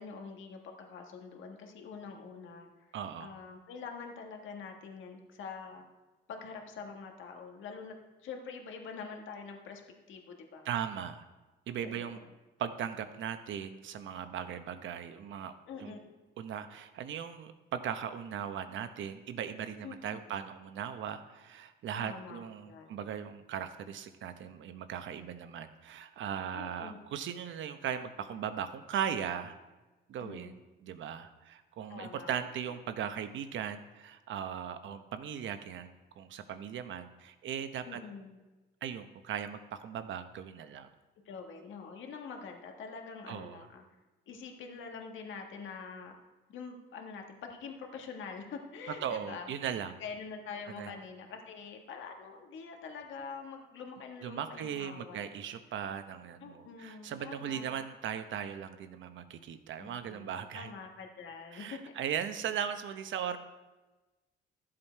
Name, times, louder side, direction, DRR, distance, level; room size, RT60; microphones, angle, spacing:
voice 1, 0.0-2.9 3.2-5.9 6.3-7.9 8.2-9.8 10.1-10.7 11.8-12.2 15.7-16.1 19.8-20.4 21.9-22.4 22.7-23.0 26.5-27.0 30.2-30.6 31.9-32.5 37.8-38.4 41.2-43.8 44.3-46.2 46.5-49.5 50.0-55.3 56.4-57.8 59.8-62.1, left 5 dB, 75° left, 3 dB, 1.6 m, -45 dB
voice 2, 2.9-3.3 10.6-11.2 11.7-12.2 12.6-15.5 15.8-16.0 16.4-29.6 30.1-38.0 38.8-40.9 43.3-43.6 49.0-50.0 50.7-50.9 54.2-60.7 61.5-63.4, right 8 dB, 75° right, 10 dB, 0.9 m, -38 dB
12.0 x 7.6 x 4.5 m, 1.2 s
cardioid pair, 90°, 20 cm